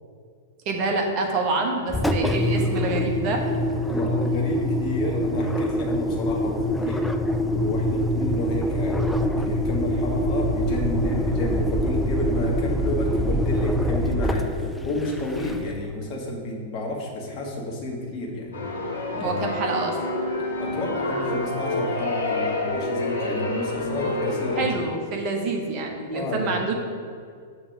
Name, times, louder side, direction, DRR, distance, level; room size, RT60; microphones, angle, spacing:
voice 1, 0.6-3.4 19.1-20.0 24.6-26.7, right 3 dB, 35° right, 1 dB, 1.0 m, -27 dB
Engine, 1.9-15.9, equal, 5° left, 0.3 m, -24 dB
voice 2, 3.9-7.0 7.5-18.6 19.2-19.4 20.6-24.7 26.1-26.5, left 2 dB, 35° left, -2 dB, 1.4 m, -31 dB
sound 1, 18.5-24.6, left 2 dB, 70° left, 1.6 m, -28 dB
6.8 x 3.2 x 5.9 m, 2.2 s
figure-of-eight pair, 100°, 0 cm